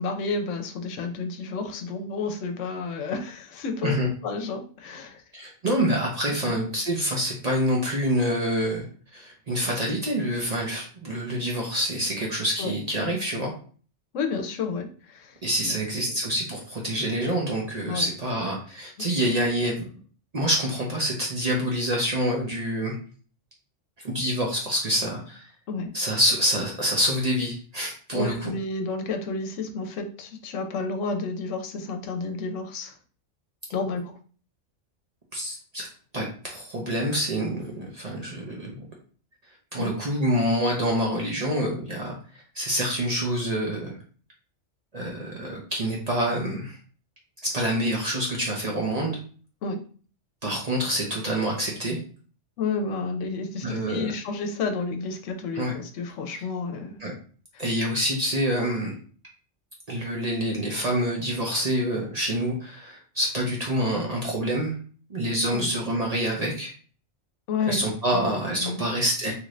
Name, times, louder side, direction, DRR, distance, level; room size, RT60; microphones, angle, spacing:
voice 1, 0.0-5.2 12.6-12.7 14.1-15.4 15.6-15.9 17.9-18.1 25.7-25.9 28.1-32.9 33.7-34.2 39.8-39.9 49.6-49.8 52.6-57.0 57.5-57.6 65.5-65.7 67.5-67.9 68.1-68.8, left 4 dB, 80° left, 6 dB, 0.9 m, -31 dB
voice 2, 5.3-8.8 9.1-13.5 15.4-19.9 20.3-22.9 24.0-25.4 25.9-28.5 35.3-35.9 36.1-38.9 39.7-42.2 42.5-43.9 44.9-46.8 47.4-49.2 50.4-52.0 53.6-54.1 55.5-55.7 56.3-56.4 57.0-57.1 57.6-59.0 59.9-64.8 65.1-66.7 67.7-69.3, equal, 45° right, -1 dB, 0.6 m, -26 dB
2.9 x 2.5 x 3.1 m, 0.41 s
omnidirectional pair, 1.3 m